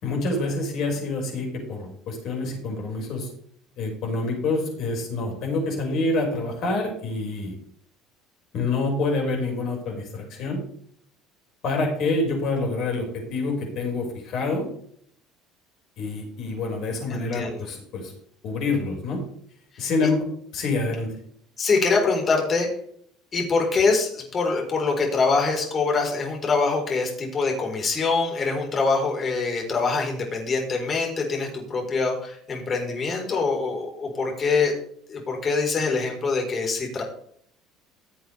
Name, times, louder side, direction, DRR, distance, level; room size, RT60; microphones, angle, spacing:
voice 1, 0.0-3.3 3.8-7.5 8.5-10.6 11.6-14.7 16.0-18.1 18.4-19.2 19.8-20.2 20.5-21.1, left 3 dB, 55° left, 1 dB, 5.6 m, -27 dB
voice 2, 17.1-17.7 21.6-22.7 23.3-34.7 35.1-37.0, left 4 dB, 35° left, 1 dB, 4.4 m, -24 dB
16.0 x 7.9 x 3.5 m, 0.64 s
hypercardioid pair, 65°, 0 cm